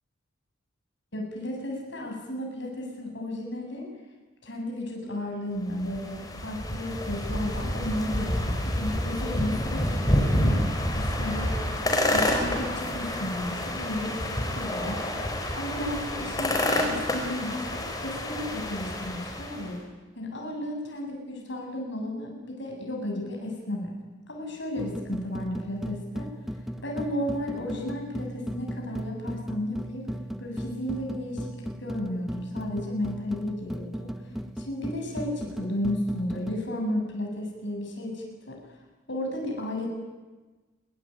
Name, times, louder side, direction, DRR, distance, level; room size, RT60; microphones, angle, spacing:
voice 1, 1.1-3.9 4.4-11.7 12.1-15.1 15.5-19.8 20.2-23.9 24.3-26.3 26.8-30.1 30.4-34.1 34.6-38.6 39.1-39.9, left 1 dB, 55° left, 1 dB, 7.9 m, -33 dB
sound 1, 5.7-19.7, left 1 dB, 15° left, 4.9 m, -28 dB
sound 2, 24.8-36.6, equal, ahead, 1.3 m, -37 dB
26.5 x 24.0 x 9.3 m, 1.2 s
head